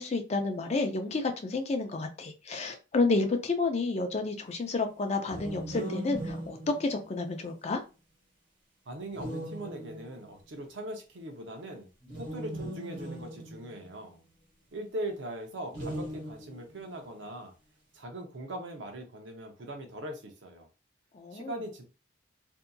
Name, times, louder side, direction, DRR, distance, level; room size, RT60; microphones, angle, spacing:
voice 1, 0.0-7.8 21.1-21.6, left 3 dB, 35° left, 0.4 m, -30 dB
sound 1, 5.2-7.5 9.1-10.3 12.0-14.3 15.7-16.8, right 1 dB, 50° right, 1.0 m, -39 dB
voice 2, 8.9-11.9 12.2-14.2 14.7-17.5 17.9-20.7 21.3-21.8, right 1 dB, 80° right, 0.6 m, -40 dB
2.7 x 2.5 x 2.2 m
head